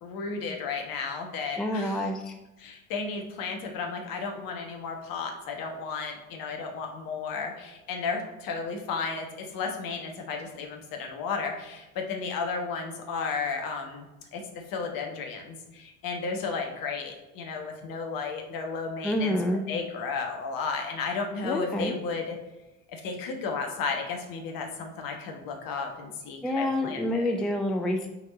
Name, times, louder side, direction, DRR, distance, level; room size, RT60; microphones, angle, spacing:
voice 1, 0.0-2.1 2.6-14.1 14.3-14.4 14.7-19.3 19.7-22.4 22.9-27.3, left 4 dB, 50° left, 3 dB, 1.3 m, -33 dB
voice 2, 1.6-2.3 19.0-19.6 21.4-21.9 26.4-28.1, left 1 dB, ahead, 4 dB, 0.3 m, -28 dB
5.8 x 4.2 x 4.0 m, 1.1 s
figure-of-eight pair, 55°, 44 cm